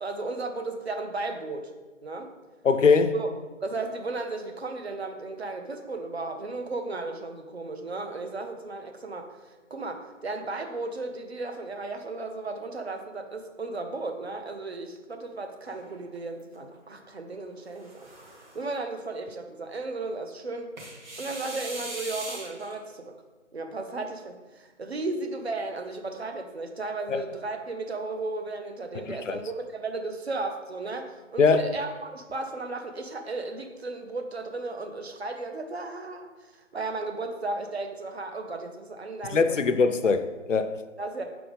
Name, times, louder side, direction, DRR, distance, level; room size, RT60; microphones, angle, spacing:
voice 1, 0.0-1.7 2.0-2.3 3.1-3.3 3.6-9.3 9.7-17.9 18.5-20.7 21.2-23.1 23.5-36.3 36.7-39.7 41.0-41.2, right 3 dB, 55° right, 0.8 m, -35 dB
voice 2, 2.6-3.2 27.1-27.2 28.9-29.4 31.4-31.7 39.3-40.8, left 5 dB, 75° left, 0.6 m, -22 dB
sound 1, 15.7-16.6 17.6-18.7 20.8-22.7, right 2 dB, 35° right, 1.3 m, -40 dB
6.0 x 3.5 x 5.2 m
figure-of-eight pair, 160°, 38 cm